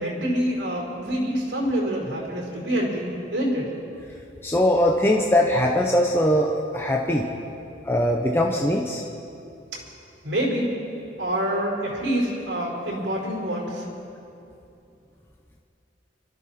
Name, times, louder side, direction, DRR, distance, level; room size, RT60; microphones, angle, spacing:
voice 1, 0.0-3.7 9.7-9.8 10.2-10.7 11.2-13.8, equal, 80° right, -4 dB, 4.6 m, -26 dB
voice 2, 4.4-7.3 7.8-9.0, left 1 dB, 15° left, 0 dB, 0.8 m, -21 dB
25.0 x 13.0 x 4.3 m, 2.7 s
head